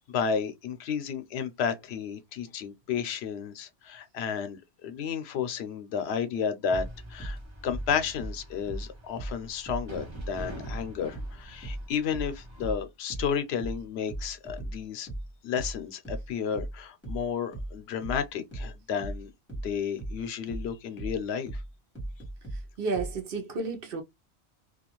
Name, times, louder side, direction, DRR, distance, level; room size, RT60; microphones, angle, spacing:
voice 1, 0.0-7.4 7.6-15.1 15.4-19.3 19.6-21.6, left 7 dB, 75° left, 0.8 m, -32 dB
sound 1, 6.7-9.9 10.1-23.2, right 1 dB, 10° left, 1.1 m, -37 dB
sound 2, 6.7-12.8, right 1 dB, 30° right, 0.7 m, -45 dB
voice 2, 22.8-24.0, right 3 dB, 60° right, 0.8 m, -31 dB
2.4 x 2.3 x 2.9 m
omnidirectional pair, 1.1 m